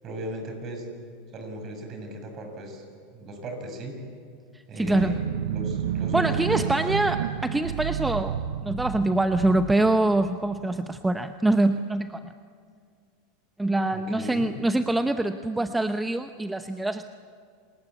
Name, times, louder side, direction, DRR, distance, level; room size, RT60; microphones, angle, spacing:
voice 1, 0.0-0.9 1.3-2.8 3.1-4.0 4.7-7.1 13.9-14.5, right 1 dB, 40° right, 4 dB, 6.9 m, -37 dB
voice 2, 4.8-5.2 6.1-12.3 13.6-17.1, right 2 dB, 10° right, 8 dB, 0.8 m, -24 dB
sound 1, 4.8-10.8, right 9 dB, 90° right, 0.8 m, -31 dB
28.5 x 19.5 x 8.3 m, 2.1 s
hypercardioid pair, 110°, 0 cm